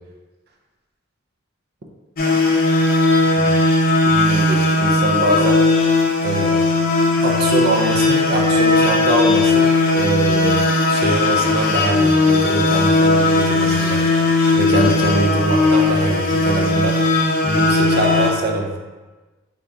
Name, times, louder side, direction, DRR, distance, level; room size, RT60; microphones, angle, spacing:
sound 1, 2.2-18.3, left 2 dB, 45° left, 0.6 m, -17 dB
voice 1, 4.0-5.6 6.2-6.6 7.2-10.6 10.9-14.0 14.3-18.7, right 1 dB, 50° right, 2 dB, 0.5 m, -23 dB
3.7 x 3.0 x 3.5 m, 1.2 s
head